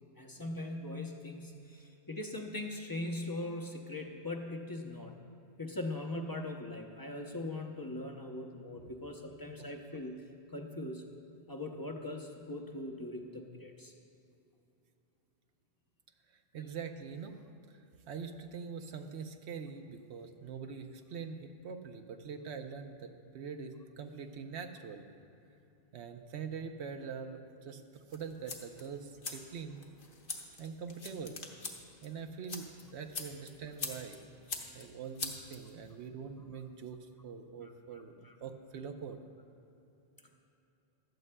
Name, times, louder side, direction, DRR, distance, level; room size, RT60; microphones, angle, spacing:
voice 1, 0.2-5.1 5.6-10.2 10.5-11.0 11.5-13.9 37.6-38.3, left 2 dB, 25° left, 3 dB, 0.5 m, -41 dB
voice 2, 16.5-17.4 18.1-25.0 25.9-27.8 28.1-29.8 30.6-31.4 32.0-34.2 34.7-38.1 38.4-39.2, right 6 dB, 85° right, 6 dB, 0.9 m, -43 dB
sound 1, 28.1-36.1, left 3 dB, 55° left, 1.2 m, -45 dB
15.5 x 12.0 x 2.2 m, 2.8 s
omnidirectional pair, 1.1 m